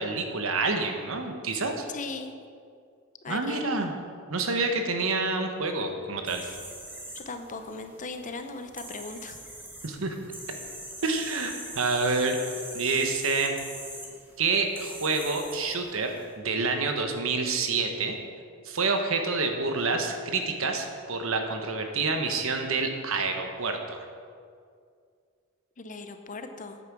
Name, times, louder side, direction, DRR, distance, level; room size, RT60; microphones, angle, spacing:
voice 1, 0.0-1.9 3.3-3.9 4.3-6.4 9.8-10.1 11.0-12.4 12.7-13.5 14.4-18.2 18.6-24.1, right 3 dB, 65° right, 5 dB, 1.2 m, -28 dB
voice 2, 1.9-2.3 3.2-3.7 6.4-6.6 7.1-9.4 25.8-26.8, left 3 dB, 35° left, 8 dB, 0.7 m, -38 dB
sound 1, 6.3-16.3, right 1 dB, 10° right, 1.5 m, -43 dB
9.3 x 8.4 x 6.1 m, 2.2 s
head